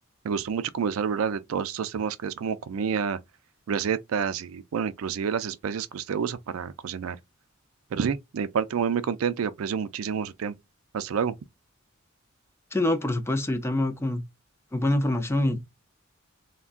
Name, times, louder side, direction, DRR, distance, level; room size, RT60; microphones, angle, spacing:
voice 1, 0.2-3.2 3.7-7.2 7.9-10.5 10.9-11.3, right 7 dB, 85° right, 0.4 m, -28 dB
voice 2, 12.7-14.2 14.7-15.6, left 1 dB, 10° left, 0.4 m, -25 dB
3.6 x 2.2 x 2.4 m
head